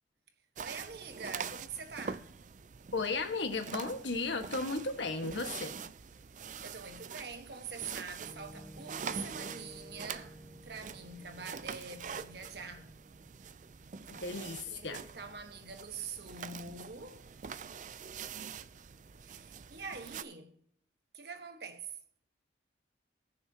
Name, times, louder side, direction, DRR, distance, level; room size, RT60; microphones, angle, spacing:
sound 1, 0.6-20.2, right 6 dB, 40° right, 0.4 m, -45 dB
voice 1, 0.6-2.3 6.4-12.9 14.7-17.3 19.2-20.6 21.1-21.9, right 5 dB, 60° right, 1.4 m, -45 dB
voice 2, 2.9-5.8 14.1-15.0, left 3 dB, 75° left, 1.6 m, -35 dB
Piano, 8.2-16.1, equal, 10° left, 1.6 m, -55 dB
20.0 x 6.7 x 2.9 m
head